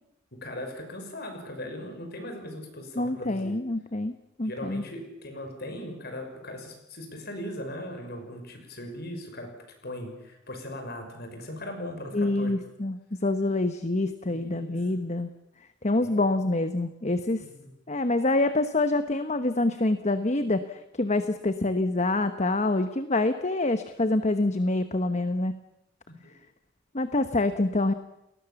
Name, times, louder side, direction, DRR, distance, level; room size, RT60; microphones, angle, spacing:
voice 1, 0.3-3.6 4.4-9.5 9.8-12.5 14.3-14.8 16.0-16.2 17.4-17.7 26.1-26.3, left 1 dB, 50° left, 5 dB, 6.0 m, -39 dB
voice 2, 3.0-4.8 12.1-15.3 15.8-17.4 17.9-25.6 26.9-27.9, left 2 dB, 35° left, 10 dB, 1.0 m, -26 dB
30.0 x 20.5 x 7.1 m, 0.87 s
head